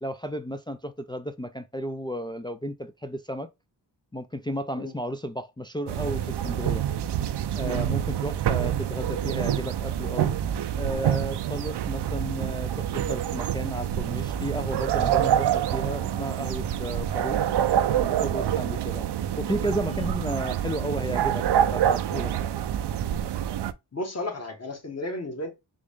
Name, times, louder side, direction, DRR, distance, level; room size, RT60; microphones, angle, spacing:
voice 1, 0.0-3.5 4.1-6.8 7.6-10.4 10.8-17.4 17.9-19.1 19.4-22.5, equal, 10° left, 0.3 m, -33 dB
sound 1, 5.9-23.7, right 10 dB, 70° right, 0.5 m, -26 dB
voice 2, 23.9-25.5, left 2 dB, 35° left, 1.5 m, -34 dB
3.7 x 2.5 x 3.4 m
cardioid pair, 55°, 43 cm